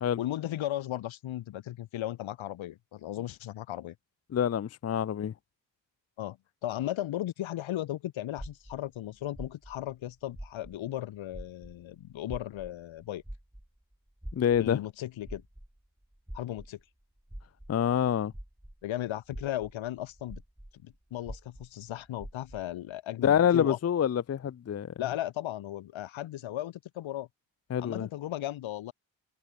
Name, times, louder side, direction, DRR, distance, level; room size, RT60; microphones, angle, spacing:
voice 1, 0.2-3.9 6.2-13.2 14.6-15.4 16.3-16.8 18.8-20.4 20.8-23.8 25.0-27.3 27.8-28.9, left 13 dB, 80° left, 1.7 m, -36 dB
voice 2, 4.3-5.3 14.3-14.8 17.7-18.3 23.2-24.9 27.7-28.1, left 9 dB, 35° left, 0.6 m, -26 dB
sound 1, 8.4-11.0 11.3-18.9 19.2-22.8, right 1 dB, 5° right, 2.4 m, -46 dB
supercardioid pair, 40°, 46 cm